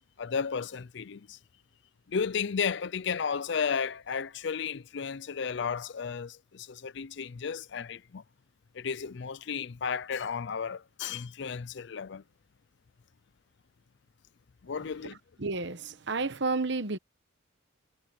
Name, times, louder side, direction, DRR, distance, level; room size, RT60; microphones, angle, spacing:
voice 1, 0.2-1.4 2.1-8.2 8.7-12.2 14.6-15.2, left 6 dB, 55° left, 0.4 m, -33 dB
voice 2, 15.4-17.0, right 3 dB, 55° right, 1.1 m, -31 dB
head